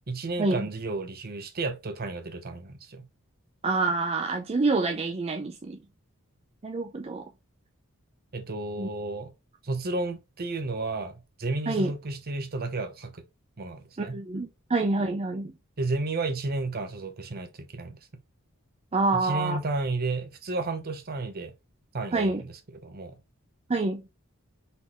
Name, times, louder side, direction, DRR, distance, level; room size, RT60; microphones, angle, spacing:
voice 1, 0.1-3.0 8.3-9.3 9.6-13.2 13.6-14.2 15.8-18.0 19.1-21.5 21.9-22.5 22.8-23.2, right 3 dB, 45° right, 0.8 m, -32 dB
voice 2, 3.6-5.8 6.6-7.3 8.8-8.9 11.7-11.9 14.0-15.5 18.9-19.6 22.1-22.4 23.7-24.0, right 3 dB, 30° right, 0.5 m, -27 dB
4.1 x 3.8 x 3.0 m
head